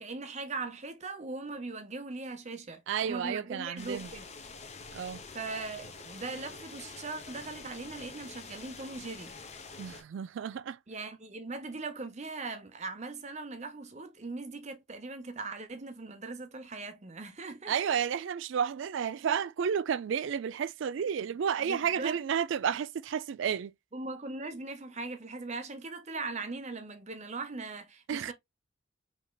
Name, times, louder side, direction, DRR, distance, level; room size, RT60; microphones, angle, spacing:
voice 1, 0.0-4.3 5.3-9.3 10.9-17.8 21.6-22.2 23.9-28.3, right 3 dB, 35° right, 0.7 m, -40 dB
voice 2, 2.9-4.1 4.9-5.2 9.8-10.8 17.7-23.7 28.1-28.3, right 7 dB, 65° right, 0.3 m, -31 dB
sound 1, 3.8-10.0, left 4 dB, 30° left, 0.8 m, -47 dB
5.3 x 3.5 x 2.3 m
head